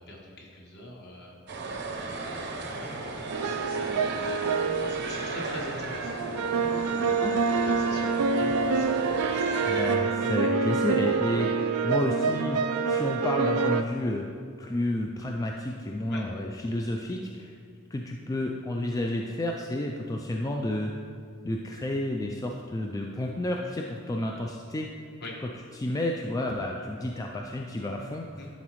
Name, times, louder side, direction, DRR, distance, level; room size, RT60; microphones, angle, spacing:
voice 1, 0.0-4.1 4.9-7.2 7.6-8.9 9.2-9.4 10.2-10.3 16.1-16.2 25.2-25.4 28.4-28.5, left 1 dB, 50° left, -2 dB, 1.3 m, -44 dB
sound 1, 1.5-10.0, right 3 dB, 55° right, 0.7 m, -35 dB
sound 2, 3.3-13.8, right 4 dB, 80° right, 0.4 m, -27 dB
voice 2, 9.6-12.6 12.9-14.2 14.6-17.6 17.9-20.9 21.4-24.9 25.8-28.3, left 1 dB, 15° left, 1 dB, 0.3 m, -31 dB
11.0 x 4.1 x 3.1 m, 2.2 s
head